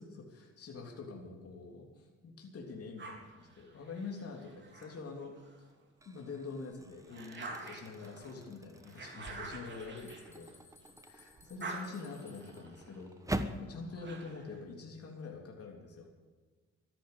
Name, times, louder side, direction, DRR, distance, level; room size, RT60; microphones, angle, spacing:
voice 1, 0.0-5.7 6.0-10.5 11.0-16.1, left 4 dB, 50° left, 1 dB, 3.4 m, -46 dB
sound 1, 3.0-5.7 6.2-11.0 11.3-14.6, right 3 dB, 40° right, 4.0 m, -48 dB
sound 2, 4.8-5.1 5.7-13.7, right 1 dB, 10° right, 1.3 m, -45 dB
sound 3, 9.7-12.8, left 3 dB, 10° left, 4.4 m, -62 dB
13.5 x 11.5 x 8.3 m, 1.4 s
cardioid pair, 90°, 30 cm